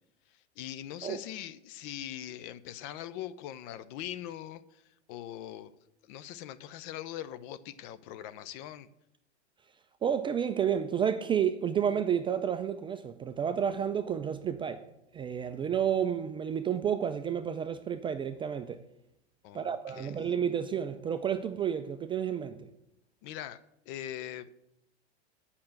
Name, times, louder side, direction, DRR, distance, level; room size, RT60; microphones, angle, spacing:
voice 1, 0.3-5.7 6.0-8.9 19.4-20.3 23.2-23.6 23.9-24.5, left 12 dB, 45° left, 0.7 m, -42 dB
voice 2, 10.0-14.8 15.1-18.8 19.5-22.7, right 8 dB, 15° right, 0.3 m, -30 dB
8.6 x 5.7 x 7.8 m
hypercardioid pair, 100°, 34 cm